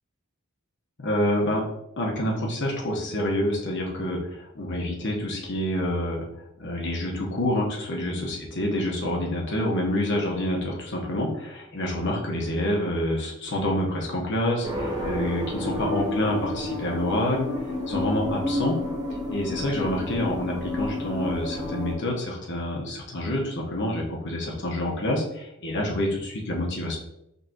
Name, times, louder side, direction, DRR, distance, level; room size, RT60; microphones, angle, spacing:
voice 1, 1.0-1.6 2.0-6.2 6.6-17.5 17.9-18.8 19.3-27.0, left 1 dB, 60° left, -1 dB, 1.1 m, -27 dB
sound 1, 14.6-21.9, left 1 dB, 20° right, 1.0 m, -30 dB
5.5 x 3.3 x 2.9 m, 0.82 s
head